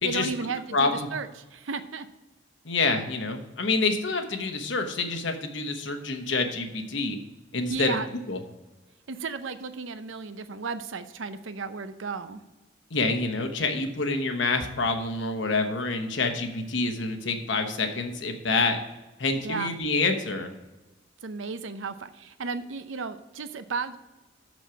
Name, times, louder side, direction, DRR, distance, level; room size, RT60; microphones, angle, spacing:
voice 1, 0.0-2.1 7.7-8.1 9.1-12.4 19.4-19.7 21.2-24.0, right 4 dB, 80° right, 11 dB, 0.6 m, -34 dB
voice 2, 0.7-1.1 2.6-7.2 7.5-8.0 8.3-8.4 12.9-18.8 19.2-20.5, left 3 dB, 70° left, 5 dB, 1.1 m, -27 dB
6.5 x 6.1 x 6.9 m, 1.1 s
head